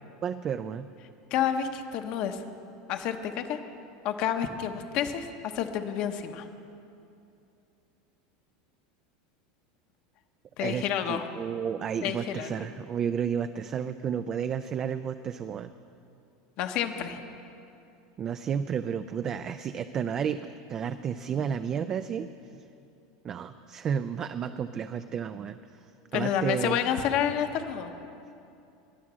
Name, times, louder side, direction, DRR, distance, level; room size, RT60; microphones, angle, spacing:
voice 1, 0.2-0.9 10.6-15.7 18.2-22.7 23.2-26.8, right 7 dB, 25° right, 10 dB, 0.3 m, -32 dB
voice 2, 1.3-2.4 2.9-3.6 4.0-5.3 5.5-6.5 10.6-11.2 12.0-12.5 16.6-17.2 26.1-27.9, left 9 dB, 45° left, 7 dB, 0.9 m, -29 dB
21.0 x 7.3 x 6.1 m, 2.7 s
supercardioid pair, 160°, 2 cm